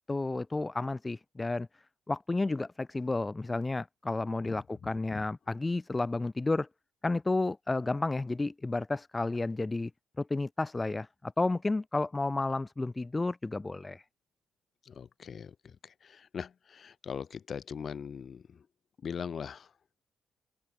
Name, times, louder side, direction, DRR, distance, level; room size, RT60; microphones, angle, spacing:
voice 1, 0.1-1.7 2.1-6.7 7.0-9.9 10.2-14.0, left 2 dB, 20° left, 4.1 m, -31 dB
voice 2, 4.8-5.2 14.8-18.6 19.0-19.7, left 7 dB, 50° left, 4.4 m, -41 dB
open air
cardioid pair, 90°, 0 cm